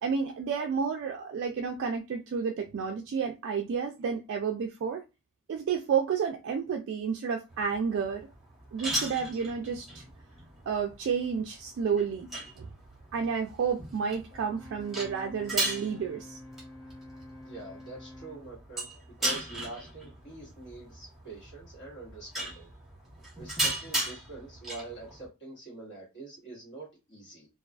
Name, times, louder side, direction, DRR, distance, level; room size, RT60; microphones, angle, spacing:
voice 1, 0.0-5.0 5.5-8.3 8.7-10.0 10.7-12.3 12.6-12.7 13.1-16.4, right 6 dB, 55° right, 0.3 m, -31 dB
sound 1, 7.5-25.3, right 1 dB, ahead, 1.0 m, -37 dB
Brass instrument, 14.3-18.5, left 1 dB, 75° left, 0.8 m, -48 dB
voice 2, 17.5-18.9 19.2-22.7 23.4-27.5, right 2 dB, 55° left, 1.3 m, -45 dB
2.3 x 2.3 x 2.3 m
head